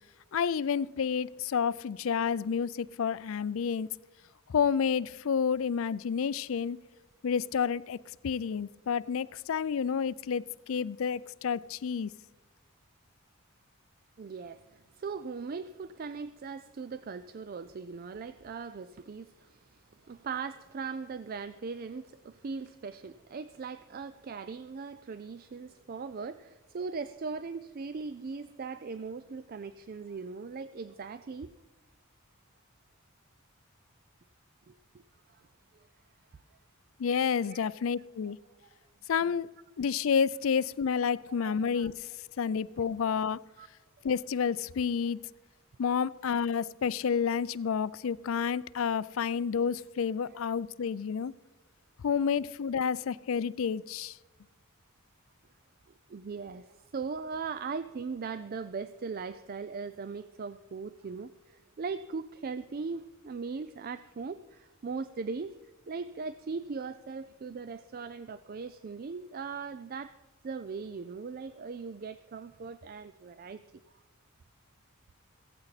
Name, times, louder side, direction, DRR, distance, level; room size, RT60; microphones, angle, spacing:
voice 1, 0.3-3.9 4.5-6.8 7.2-8.0 8.2-12.1 37.0-38.4 39.1-39.5 39.8-41.9 42.4-43.4 44.0-45.2 45.8-51.3 52.0-54.2, left 6 dB, 65° left, 0.4 m, -30 dB
voice 2, 14.2-31.5 34.7-35.0 35.3-35.4 35.7-35.9 37.4-37.7 38.3-38.4 38.6-38.7 41.4-41.9 42.8-42.9 43.6-43.7 50.2-50.4 56.1-65.5 65.9-70.2 70.4-73.6, right 5 dB, 45° right, 0.4 m, -39 dB
15.5 x 15.5 x 4.1 m
head